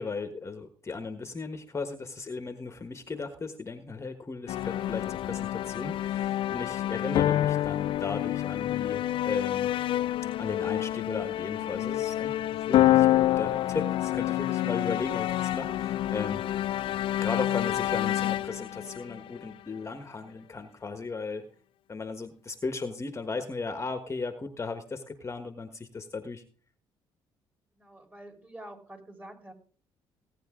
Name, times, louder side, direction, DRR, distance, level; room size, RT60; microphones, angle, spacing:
voice 1, 0.0-9.7 10.3-16.4 17.1-21.4 21.9-26.4, left 4 dB, 30° left, 8 dB, 1.3 m, -36 dB
sound 1, 4.5-19.8, left 13 dB, 60° left, 0.4 m, -28 dB
voice 2, 27.7-29.5, right 1 dB, 15° right, 3 dB, 4.2 m, -48 dB
17.5 x 9.3 x 3.7 m, 0.42 s
supercardioid pair, 70°, 10 cm